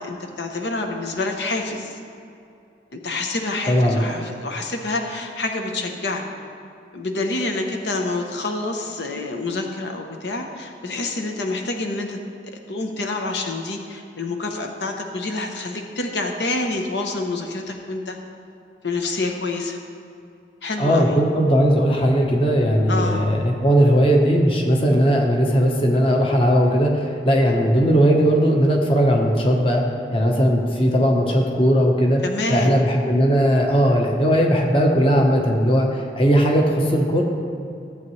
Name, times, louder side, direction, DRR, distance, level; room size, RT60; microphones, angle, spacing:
voice 1, 0.0-2.0 2.9-6.2 6.9-12.2 12.7-18.2 18.8-19.8 20.6-21.2 22.9-23.2 32.2-32.7, left 2 dB, 80° left, 3 dB, 0.9 m, -27 dB
voice 2, 3.7-4.1 20.8-29.8 30.1-32.2 32.5-37.2, equal, 30° left, 1 dB, 1.0 m, -18 dB
14.5 x 8.4 x 3.2 m, 2.5 s
head